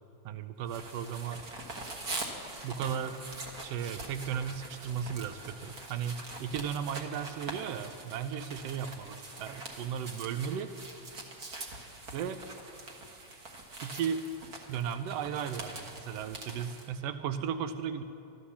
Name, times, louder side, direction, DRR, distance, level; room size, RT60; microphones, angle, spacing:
voice 1, 0.2-1.4 2.6-3.2 3.6-10.7 12.1-12.4 13.8-14.2 14.7-18.0, right 8 dB, 80° right, 10 dB, 1.5 m, -35 dB
sound 1, 0.7-16.9, right 2 dB, 45° right, 1.4 m, -44 dB
13.0 x 12.5 x 7.1 m, 2.7 s
omnidirectional pair, 3.3 m